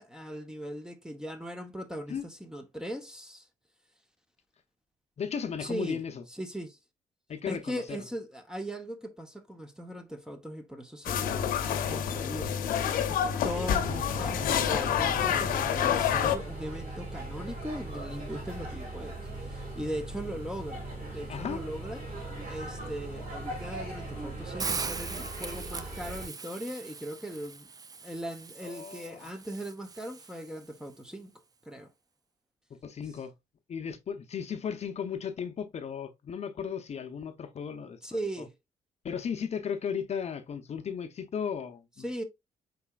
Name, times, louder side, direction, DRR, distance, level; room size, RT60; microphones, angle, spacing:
voice 1, 0.0-3.5 5.6-6.0 6.3-6.8 7.4-20.9 21.1-22.0 22.5-27.7 28.0-31.3 31.6-31.9 38.0-38.5 42.0-42.2, equal, 5° right, 0.8 m, -39 dB
voice 2, 5.2-6.2 7.3-8.0 14.3-14.6 21.3-21.6 28.6-29.3 32.7-33.3 33.7-38.0 39.0-42.2, left 7 dB, 50° left, 0.7 m, -36 dB
sound 1, 11.1-16.4, left 9 dB, 85° left, 0.7 m, -28 dB
sound 2, 13.8-26.3, right 2 dB, 90° right, 2.8 m, -39 dB
Hiss, 24.6-30.7, right 5 dB, 25° right, 0.4 m, -40 dB
4.8 x 4.1 x 2.3 m
cardioid pair, 90°, 14 cm